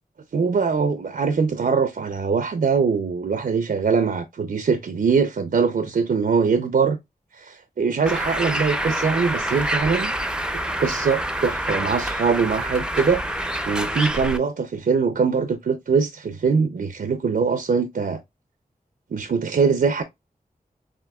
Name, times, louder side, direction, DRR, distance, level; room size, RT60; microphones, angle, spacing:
voice 1, 0.3-7.0 7.3-10.1 10.8-18.2 19.1-20.0, right 5 dB, 65° right, 0.5 m, -22 dB
Bird, 8.1-14.4, right 1 dB, 5° right, 0.5 m, -26 dB
7.4 x 2.7 x 2.2 m
wide cardioid pair, 85°, 16 cm